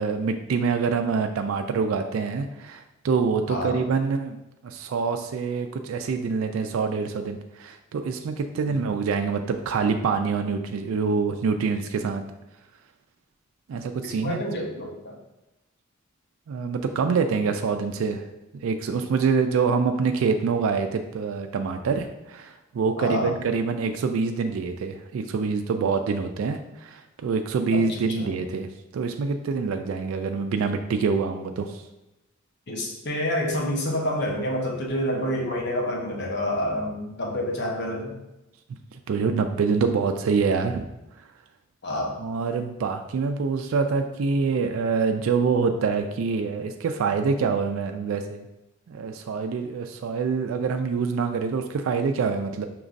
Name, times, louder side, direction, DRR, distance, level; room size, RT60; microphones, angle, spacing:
voice 1, 0.0-4.4 4.6-12.2 13.7-14.4 16.5-18.2 18.6-28.7 28.9-31.8 39.1-40.8 42.2-48.5 48.9-52.7, right 5 dB, 75° right, 6 dB, 0.3 m, -25 dB
voice 2, 3.5-3.8 8.7-8.8 14.2-15.2 23.0-23.3 27.7-28.5 32.7-38.2 41.8-42.2, left 1 dB, 55° left, -1 dB, 0.8 m, -28 dB
5.1 x 3.0 x 2.5 m, 0.96 s
head